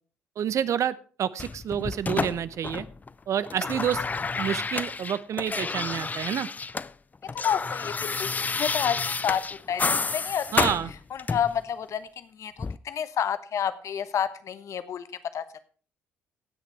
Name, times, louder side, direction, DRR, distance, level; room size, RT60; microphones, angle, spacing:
voice 1, 0.4-2.9 3.3-4.0 4.4-6.5 10.5-10.9, right 9 dB, 60° right, 16 dB, 0.7 m, -28 dB
sound 1, 1.4-3.1 3.4-6.9 7.2-11.6 12.6-12.8, left 4 dB, 25° left, 0.5 m, -30 dB
voice 2, 7.3-9.4 9.7-9.8 10.1-10.7 11.1-15.0 15.3-15.4, left 8 dB, 60° left, 13 dB, 1.1 m, -29 dB
16.5 x 6.7 x 4.6 m, 0.40 s
hypercardioid pair, 60°, 6 cm